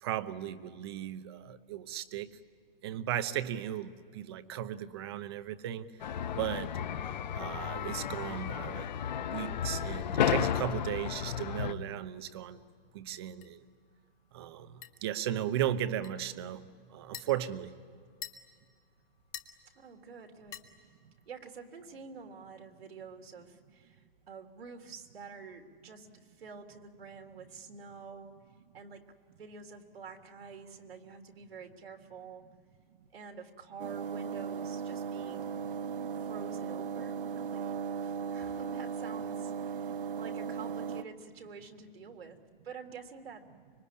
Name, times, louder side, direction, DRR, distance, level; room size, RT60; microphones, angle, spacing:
voice 1, 0.0-2.3 2.8-5.9 6.4-6.7 7.3-8.9 9.3-12.6 12.9-13.6 14.3-16.6 16.9-17.7, right 11 dB, 25° right, 13 dB, 0.8 m, -36 dB
sound 1, 6.0-11.7, left 9 dB, 50° left, 1.0 m, -33 dB
sound 2, 11.6-21.3, left 10 dB, 10° left, 0.6 m, -53 dB
voice 2, 19.7-20.6 21.3-28.3 28.7-29.0 29.4-32.4 33.1-35.6 36.1-42.4 42.6-43.4, right 5 dB, 90° right, 3 dB, 3.4 m, -48 dB
sound 3, 33.8-41.0, right 6 dB, 65° right, 1.1 m, -37 dB
25.0 x 23.0 x 9.9 m, 2.1 s
hypercardioid pair, 170°, 29 cm